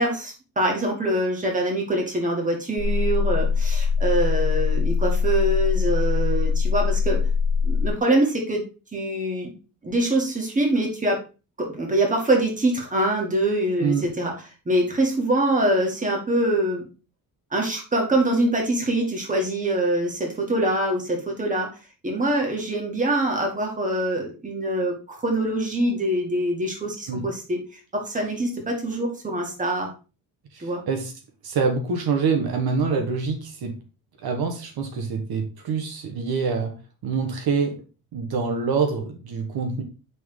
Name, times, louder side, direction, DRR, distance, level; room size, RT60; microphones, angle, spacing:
voice 1, 0.0-7.2 7.6-8.6 8.9-9.5 9.8-11.2 11.6-14.3 14.7-16.8 17.5-21.7 22.0-27.6 27.9-29.9 30.6-30.8, right 1 dB, 20° right, 1 dB, 1.9 m, -24 dB
sound 1, 2.8-7.9, left 5 dB, 10° left, 0.6 m, -22 dB
voice 2, 13.8-14.1 27.1-27.3 30.5-31.1 31.4-33.7 34.2-36.7 37.0-37.8 38.1-39.8, right 5 dB, 70° right, 3 dB, 1.4 m, -25 dB
6.0 x 3.8 x 4.7 m, 0.32 s
cardioid pair, 150°, 38 cm